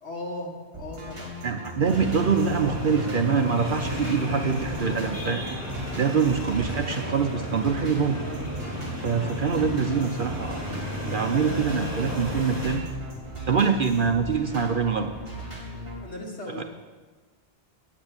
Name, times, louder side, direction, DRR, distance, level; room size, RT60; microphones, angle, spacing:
voice 1, 0.0-1.3 16.0-16.6, left 1 dB, 75° left, 0 dB, 2.2 m, -37 dB
sound 1, 0.7-16.0, right 1 dB, 25° right, 3.2 m, -38 dB
voice 2, 1.4-5.4 6.0-8.2 9.0-10.6 11.1-12.8 13.5-15.1 16.6-16.7, right 6 dB, 55° right, 5 dB, 0.8 m, -24 dB
sound 2, 1.8-12.8, equal, 10° right, 3.5 m, -33 dB
8.6 x 8.3 x 8.7 m, 1.3 s
omnidirectional pair, 1.1 m